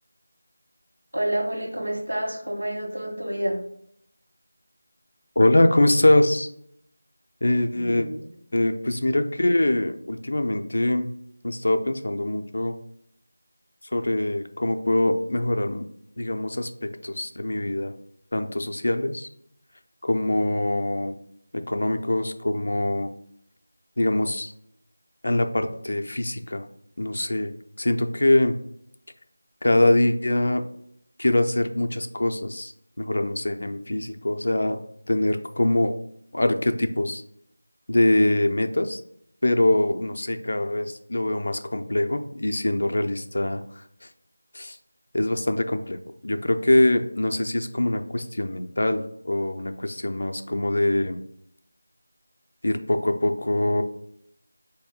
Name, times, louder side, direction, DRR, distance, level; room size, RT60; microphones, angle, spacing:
voice 1, 1.1-3.6 7.7-8.2, right 1 dB, 75° right, -1 dB, 1.4 m, -28 dB
voice 2, 5.4-6.5 7.4-8.1 8.5-11.1 11.4-12.7 13.9-15.8 16.2-17.9 18.3-19.3 20.0-21.2 21.5-23.1 24.0-24.5 25.2-26.7 27.0-28.5 29.6-30.6 31.2-32.7 33.0-34.8 35.1-35.9 36.3-37.2 37.9-39.0 39.4-43.6 44.5-44.8 45.1-51.2 52.6-53.8, left 1 dB, 55° left, 7 dB, 0.3 m, -23 dB
3.8 x 2.7 x 3.6 m, 0.72 s
figure-of-eight pair, 170°, 0 cm